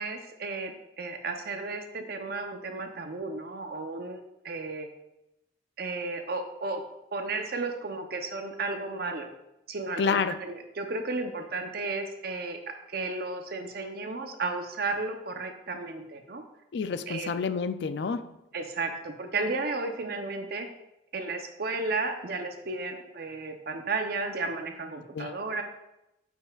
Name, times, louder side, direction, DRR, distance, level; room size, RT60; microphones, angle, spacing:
voice 1, 0.0-4.9 5.8-6.8 7.1-9.3 9.7-12.6 12.9-16.4 17.1-17.3 18.5-20.7 21.1-25.6, right 3 dB, 55° right, 5 dB, 0.7 m, -33 dB
voice 2, 10.0-10.4 16.7-18.3 25.1-25.3, left 5 dB, 70° left, 11 dB, 0.4 m, -29 dB
8.8 x 5.5 x 2.4 m, 0.89 s
head